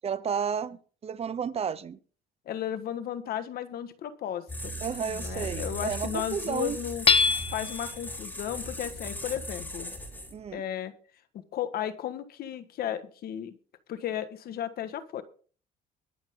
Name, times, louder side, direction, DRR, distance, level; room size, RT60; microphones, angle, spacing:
voice 1, 0.0-2.0 4.8-6.8 10.3-10.6, right 7 dB, 35° right, 0.8 m, -32 dB
voice 2, 2.4-4.7 5.1-7.1 7.5-9.9 10.5-10.9 11.5-13.5 13.9-15.2, left 10 dB, 65° left, 1.5 m, -34 dB
sound 1, 4.5-10.5, left 1 dB, 10° left, 3.6 m, -38 dB
Hammer / Chink clink, 7.1-7.9, left 5 dB, 35° left, 0.8 m, -23 dB
22.5 x 7.5 x 3.7 m
cardioid pair, 110°, 17 cm